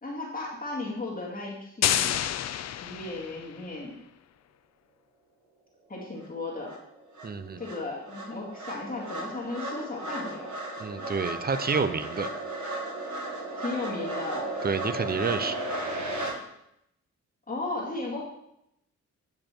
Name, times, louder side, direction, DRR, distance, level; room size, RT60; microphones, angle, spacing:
voice 1, 0.0-2.1 2.8-4.0 5.9-6.7 7.6-10.5 13.6-14.5 17.5-18.3, left 2 dB, 30° left, -5 dB, 2.2 m, -35 dB
sound 1, 1.8-3.6, left 11 dB, 60° left, 0.4 m, -28 dB
sound 2, 6.2-6.3 6.7-16.3, right 1 dB, 75° right, 1.7 m, -35 dB
voice 2, 7.2-7.6 10.8-12.3 14.6-15.6, right 5 dB, 30° right, 12 dB, 0.6 m, -29 dB
9.4 x 5.2 x 4.4 m, 0.79 s
cardioid pair, 95°, 29 cm